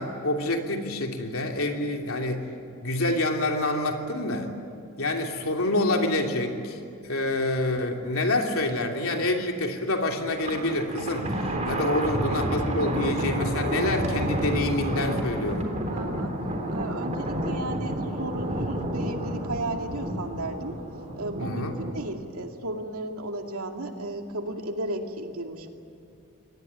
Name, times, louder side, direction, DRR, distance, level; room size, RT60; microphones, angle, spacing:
voice 1, 0.0-2.4 2.8-4.5 5.0-6.8 7.1-11.4 11.7-15.7 21.4-21.7, left 2 dB, 75° left, 2 dB, 2.9 m, -27 dB
Thunder, 10.3-22.1, right 1 dB, 35° right, 3.6 m, -30 dB
voice 2, 11.6-12.0 15.9-16.4 16.7-20.8 21.2-25.7, right 2 dB, 90° right, 4 dB, 2.4 m, -34 dB
24.5 x 18.5 x 9.7 m, 2.6 s
head